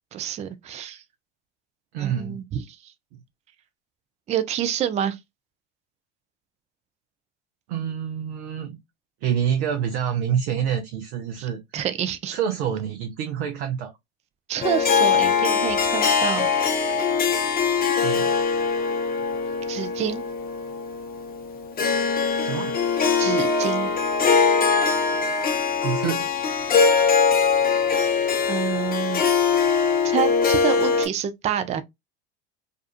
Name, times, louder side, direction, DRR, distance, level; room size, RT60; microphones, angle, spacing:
voice 1, 0.1-1.0 2.0-2.9 4.3-5.2 11.4-12.4 14.5-16.5 16.8-17.0 19.7-20.2 23.2-23.9 28.5-29.2 30.0-31.8, right 9 dB, 20° right, 0.3 m, -28 dB
voice 2, 1.9-2.4 7.7-8.8 9.2-11.6 12.3-13.9 18.0-18.4 22.4-22.8 25.8-26.4, right 8 dB, 70° right, 0.6 m, -27 dB
Harp, 14.6-31.1, left 5 dB, 30° left, 0.6 m, -22 dB
2.5 x 2.3 x 2.3 m
hypercardioid pair, 80°, 32 cm